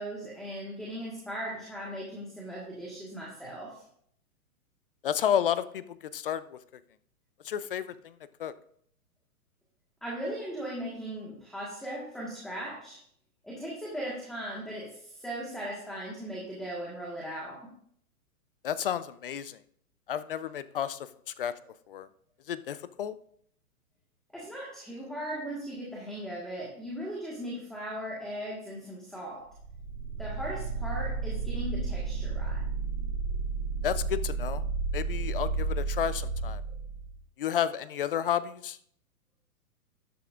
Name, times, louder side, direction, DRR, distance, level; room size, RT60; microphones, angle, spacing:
voice 1, 0.0-3.8 10.0-13.0 13.4-17.7 24.3-29.5 30.2-32.6, equal, ahead, -5 dB, 1.5 m, -38 dB
voice 2, 5.0-6.6 7.4-8.1 8.4-8.5 18.6-19.6 20.1-21.1 21.4-21.5 21.9-22.1 22.5-23.1 33.8-34.6 34.9-36.6 37.4-38.8, left 9 dB, 40° left, 15 dB, 0.5 m, -31 dB
sound 1, 29.5-37.2, right 4 dB, 15° right, 4.4 m, -32 dB
13.0 x 10.5 x 2.5 m, 0.65 s
hypercardioid pair, 160°, 44 cm